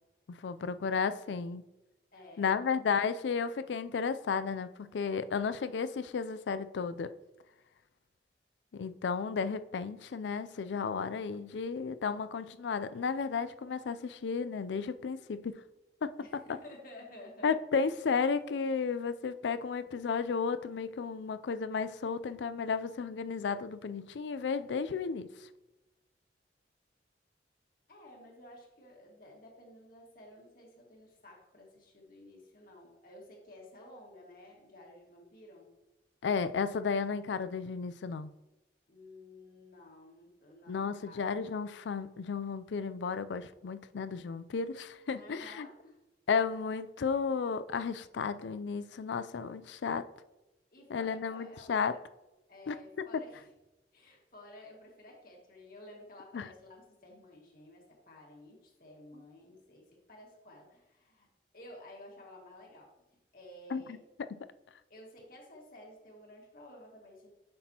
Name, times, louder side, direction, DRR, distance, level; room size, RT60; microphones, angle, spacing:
voice 1, 0.3-1.6 2.4-7.1 8.7-15.6 16.0-16.1 17.4-25.3 36.2-38.3 40.7-45.7 46.3-50.1 50.9-51.9 52.7-53.1 56.3-56.5 63.7-63.8, left 5 dB, 85° left, 0.4 m, -33 dB
voice 2, 2.1-2.7 3.3-3.8 16.2-17.5 27.9-35.7 38.9-41.5 45.1-46.0 50.7-51.7 52.5-53.5 53.9-61.3 61.5-64.0 64.9-67.4, left 1 dB, 50° left, 1.8 m, -53 dB
7.6 x 5.9 x 2.9 m
head